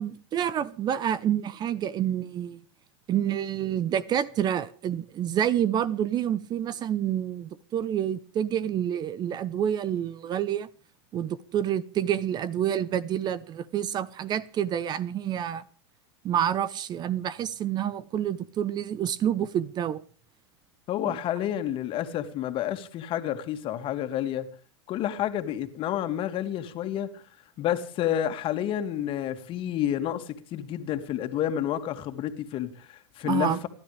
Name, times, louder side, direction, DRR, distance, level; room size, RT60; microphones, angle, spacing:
voice 1, 0.0-2.6 3.1-10.7 11.1-15.6 16.2-20.0 21.1-21.2 33.2-33.6, right 10 dB, 30° right, 0.9 m, -28 dB
voice 2, 20.9-24.5 24.9-27.2 27.6-33.7, left 11 dB, 35° left, 2.3 m, -30 dB
29.5 x 12.0 x 3.4 m
hypercardioid pair, 125°, 15 cm